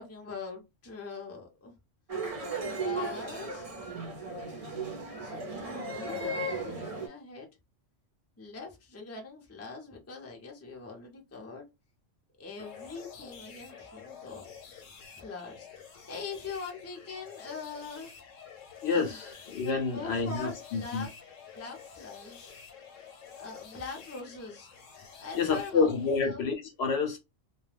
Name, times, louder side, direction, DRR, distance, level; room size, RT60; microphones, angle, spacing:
voice 1, 0.0-1.7 2.5-3.7 5.2-7.5 8.4-11.6 12.4-14.8 15.1-15.7 16.1-18.1 18.9-19.1 19.6-21.1 21.5-22.5 23.3-24.7 25.2-25.9 26.2-26.4, left 4 dB, 20° left, 0.4 m, -42 dB
sound 1, 2.1-7.1, right 2 dB, 45° right, 0.5 m, -35 dB
sound 2, 12.6-26.2, left 7 dB, 85° left, 1.1 m, -49 dB
voice 2, 18.8-21.1 25.3-27.2, left 5 dB, 65° left, 0.8 m, -29 dB
2.2 x 2.2 x 3.2 m
omnidirectional pair, 1.3 m